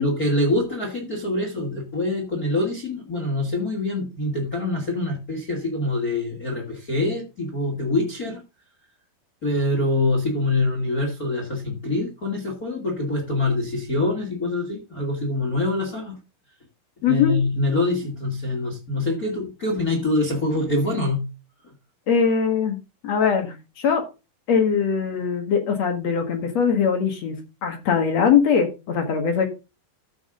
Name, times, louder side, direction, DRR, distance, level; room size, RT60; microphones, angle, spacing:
voice 1, 0.0-8.4 9.4-16.2 17.0-21.2, left 2 dB, 25° left, 0 dB, 2.4 m, -25 dB
voice 2, 17.0-17.4 22.1-22.8 23.0-24.0 24.5-27.4 27.6-29.5, left 6 dB, 50° left, 6 dB, 2.6 m, -21 dB
14.0 x 6.3 x 3.7 m, 0.28 s
omnidirectional pair, 4.3 m